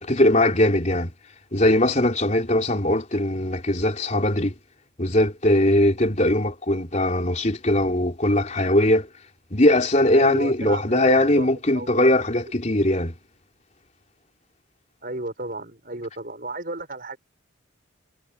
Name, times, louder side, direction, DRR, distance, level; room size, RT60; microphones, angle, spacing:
voice 1, 0.0-1.1 1.5-4.5 5.0-9.1 9.5-13.1, left 1 dB, 35° left, 3.6 m, -20 dB
voice 2, 10.1-11.5 11.7-12.1 12.7-12.9 15.0-17.2, right 2 dB, 45° right, 6.8 m, -33 dB
head